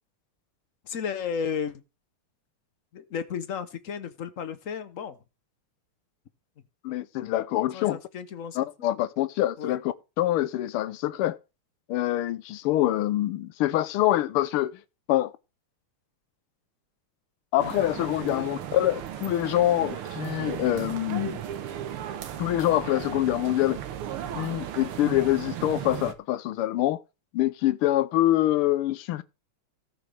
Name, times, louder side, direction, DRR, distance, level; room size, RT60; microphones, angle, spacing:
voice 1, 0.9-1.8 2.9-5.2 7.7-8.9 9.6-9.8 18.3-18.4, left 7 dB, 55° left, 0.9 m, -33 dB
voice 2, 6.8-8.0 8.5-11.4 11.9-14.8 15.1-15.3 17.5-21.4 22.4-23.8 24.3-27.0 27.3-29.2, left 14 dB, 90° left, 1.6 m, -25 dB
sound 1, 17.6-26.1, right 10 dB, 85° right, 1.9 m, -36 dB
18.0 x 6.1 x 3.3 m
omnidirectional pair, 2.3 m